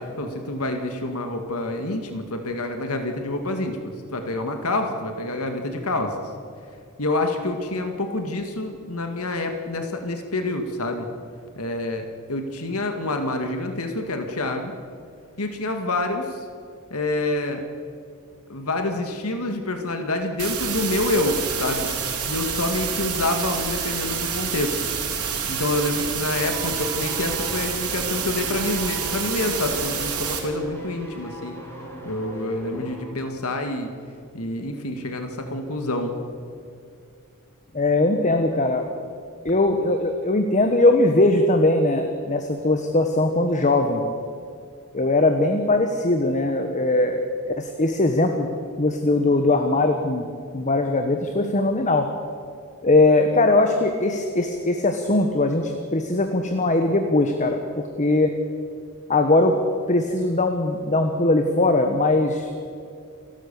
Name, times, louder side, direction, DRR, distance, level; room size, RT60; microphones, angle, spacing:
voice 1, 0.0-6.1 7.0-11.1 11.6-14.7 15.4-16.4 16.9-17.6 18.5-21.3 21.6-21.9 22.2-24.8 25.5-31.6 32.0-33.9 34.3-36.1, left 2 dB, 75° left, 5 dB, 2.0 m, -27 dB
sound 1, 20.4-30.4, right 7 dB, 85° right, 3.9 m, -28 dB
sound 2, 26.4-33.1 33.4-33.5, right 1 dB, 10° left, 4.8 m, -39 dB
voice 2, 37.7-38.9 39.4-44.0 44.9-47.2 47.6-48.5 48.8-50.3 50.5-52.1 52.8-58.3 59.1-59.5 59.9-62.5, left 2 dB, 35° left, 6 dB, 1.3 m, -20 dB
29.0 x 13.0 x 6.9 m, 2.4 s
head